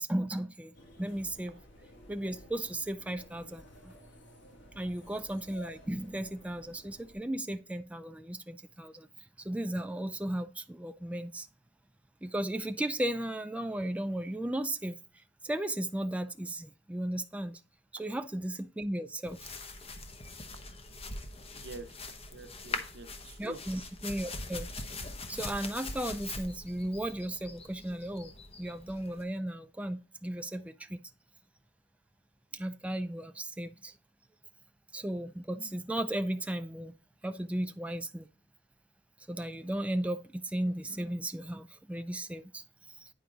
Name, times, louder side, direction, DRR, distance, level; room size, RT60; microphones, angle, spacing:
voice 1, 0.0-1.5 2.1-3.9 4.8-9.1 9.4-11.5 12.2-17.6 18.0-19.5 23.4-24.7 24.9-25.0 25.3-28.3 28.6-31.0 32.5-34.0 34.9-36.9 37.2-38.3 39.3-43.1, right 1 dB, 5° right, 0.4 m, -35 dB
sound 1, 0.7-7.1, left 1 dB, 80° left, 1.7 m, -54 dB
sound 2, 19.2-29.2, left 2 dB, 35° left, 0.9 m, -42 dB
voice 2, 21.5-22.0 22.3-23.6, right 3 dB, 70° right, 0.8 m, -47 dB
9.3 x 4.7 x 3.9 m
head